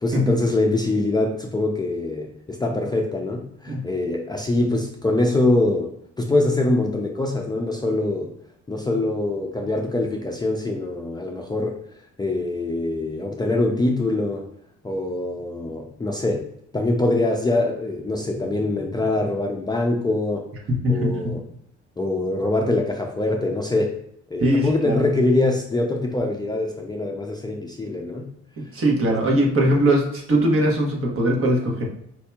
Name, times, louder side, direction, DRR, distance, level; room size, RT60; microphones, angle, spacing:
voice 1, 0.0-8.3 8.7-11.7 12.2-14.4 14.8-16.4 16.7-20.5 20.9-21.4 22.0-23.9 24.3-28.3 29.0-29.2, left 2 dB, 15° left, 0 dB, 0.4 m, -23 dB
voice 2, 20.7-21.4 24.4-25.0 28.7-31.8, right 1 dB, 45° right, -1 dB, 1.1 m, -20 dB
4.4 x 2.7 x 2.3 m, 0.73 s
cardioid pair, 90°, 30 cm